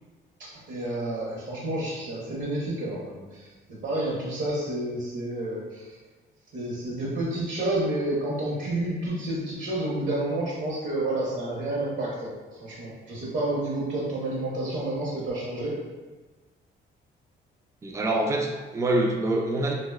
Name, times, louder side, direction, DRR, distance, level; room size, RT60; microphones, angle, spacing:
voice 1, 0.4-6.0 6.5-15.8, right 1 dB, 65° right, -6 dB, 0.7 m, -30 dB
voice 2, 17.8-19.7, right 1 dB, 15° right, 1 dB, 0.3 m, -25 dB
2.6 x 2.0 x 2.3 m, 1.3 s
cardioid pair, 90°, 20 cm